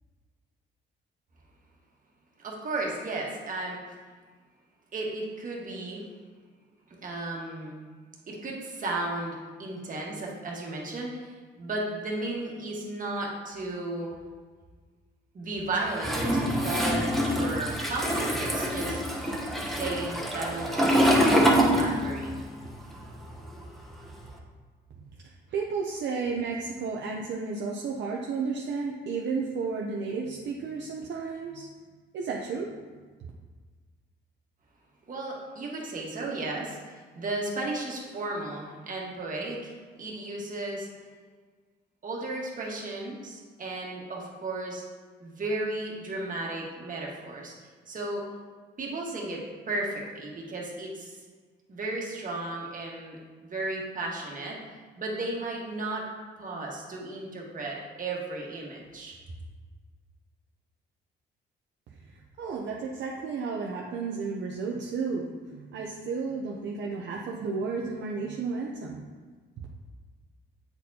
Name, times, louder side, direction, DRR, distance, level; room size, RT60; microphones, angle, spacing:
voice 1, 2.4-3.8 4.9-6.0 7.0-7.8 8.3-14.1 15.3-19.0 19.6-22.4 35.1-40.9 42.0-44.8 45.2-47.5 47.9-48.2 48.8-51.2 51.7-54.6 55.0-56.1 56.4-59.2, right 2 dB, 45° right, -2 dB, 1.5 m, -34 dB
Toilet flush, 16.0-22.4 22.7-24.3, equal, ahead, 0.9 m, -25 dB
voice 2, 25.5-31.7 32.1-32.7 62.1-69.1, right 4 dB, 65° right, -1 dB, 0.6 m, -32 dB
8.0 x 4.2 x 2.8 m, 1.5 s
cardioid pair, 90°, 20 cm